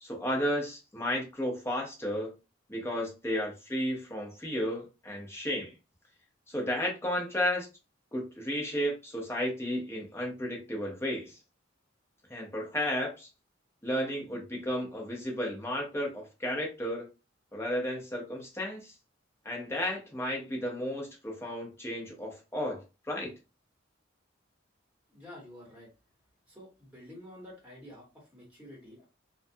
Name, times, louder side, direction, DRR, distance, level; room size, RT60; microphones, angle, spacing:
voice 1, 0.0-2.3 2.7-5.7 6.5-7.7 8.1-11.4 12.3-13.3 13.8-17.1 17.5-18.9 19.4-23.3, equal, 15° left, 0.7 m, -33 dB
voice 2, 25.1-25.9 26.5-29.0, left 1 dB, 5° right, 1.3 m, -49 dB
2.4 x 2.2 x 2.6 m
head